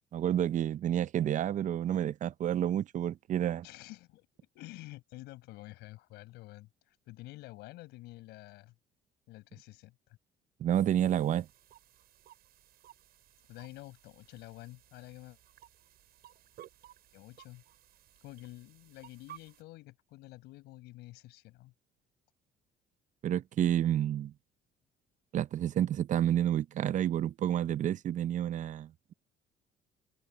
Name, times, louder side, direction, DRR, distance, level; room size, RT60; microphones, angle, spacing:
voice 1, 0.1-3.7 10.6-11.5 23.2-24.3 25.3-29.1, right 10 dB, 45° right, 0.5 m, -29 dB
voice 2, 3.6-8.7 9.3-10.2 13.5-15.4 17.1-17.6 18.2-21.7, left 19 dB, 90° left, 5.2 m, -49 dB
sound 1, 11.0-19.6, right 12 dB, 70° right, 7.9 m, -57 dB
cardioid pair, 110°, 17 cm